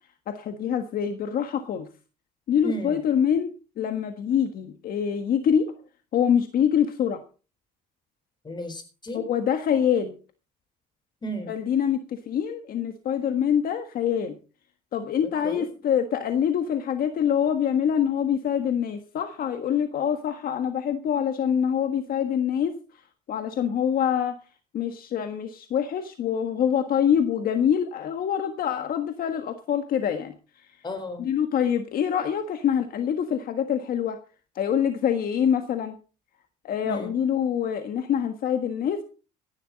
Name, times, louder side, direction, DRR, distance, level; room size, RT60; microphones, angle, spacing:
voice 1, 0.3-1.9 2.5-5.7 6.1-7.2 9.1-10.2 11.5-14.3 14.9-23.0 23.3-24.4 24.7-30.8 31.2-34.2 34.5-35.9 36.6-39.0, left 8 dB, 60° left, 7 dB, 1.5 m, -25 dB
voice 2, 8.4-9.2 11.2-11.5 15.4-15.7 30.8-31.3 36.8-37.1, right 1 dB, 25° left, 9 dB, 4.3 m, -33 dB
16.5 x 11.5 x 4.1 m, 0.35 s
cardioid pair, 110°, 17 cm